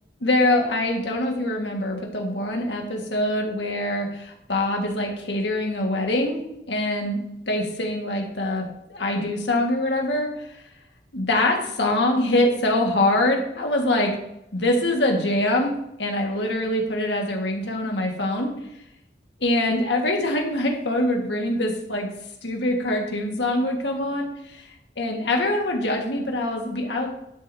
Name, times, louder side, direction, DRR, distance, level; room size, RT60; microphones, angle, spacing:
voice 1, 0.2-7.2 7.5-10.3 11.1-14.1 14.5-15.7 16.0-18.5 19.4-22.1 22.4-24.7 25.0-27.1, left 1 dB, 85° left, 1 dB, 1.7 m, -24 dB
11.5 x 6.1 x 2.8 m, 0.82 s
head